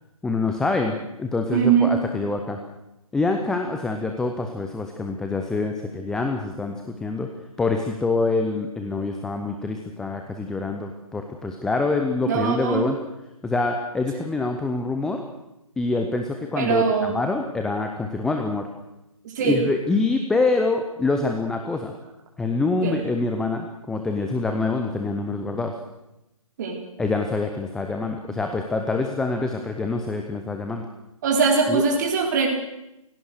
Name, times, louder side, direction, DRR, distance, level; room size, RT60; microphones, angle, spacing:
voice 1, 0.2-2.6 3.1-7.3 7.6-13.0 13.4-15.2 15.8-18.7 19.4-21.9 22.4-25.7 27.0-30.9 31.7-31.8, left 3 dB, 5° left, 4 dB, 0.8 m, -25 dB
voice 2, 1.5-1.9 12.2-12.8 16.6-17.1 19.2-19.6 22.8-23.0 26.6-26.8 31.2-32.5, right 5 dB, 30° right, 1 dB, 4.1 m, -21 dB
29.0 x 17.0 x 6.6 m, 0.91 s
figure-of-eight pair, 140°, 18 cm